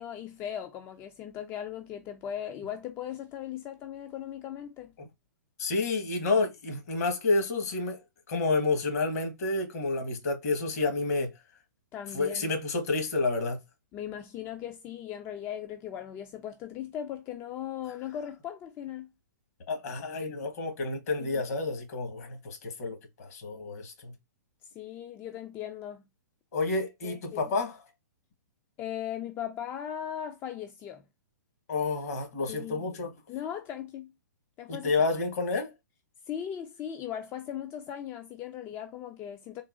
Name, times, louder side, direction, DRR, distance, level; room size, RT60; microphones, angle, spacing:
voice 1, 0.0-4.9 11.9-12.5 13.9-19.1 21.2-21.4 24.7-26.0 27.0-27.5 28.8-31.0 32.5-32.9 33.3-34.1 34.6-34.9 36.3-39.6, left 10 dB, 20° left, 0.3 m, -38 dB
voice 2, 5.6-8.0 8.3-11.3 12.1-13.6 19.7-24.1 26.5-27.8 31.7-33.1 34.7-35.7, left 3 dB, 55° left, 1.2 m, -29 dB
3.7 x 2.4 x 2.4 m
figure-of-eight pair, 120°, 10 cm